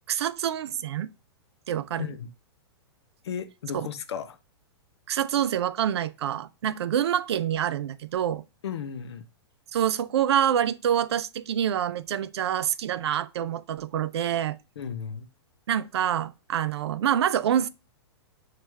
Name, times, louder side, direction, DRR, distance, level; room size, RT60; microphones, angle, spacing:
voice 1, 0.1-1.1 1.7-2.1 3.7-3.9 5.1-8.4 9.7-14.6 15.7-17.7, right 10 dB, 75° right, 0.4 m, -26 dB
voice 2, 2.0-2.3 3.2-4.4 8.6-9.2 14.8-15.3, left 8 dB, 80° left, 0.6 m, -34 dB
6.1 x 2.5 x 3.2 m
hypercardioid pair, 125°, 14 cm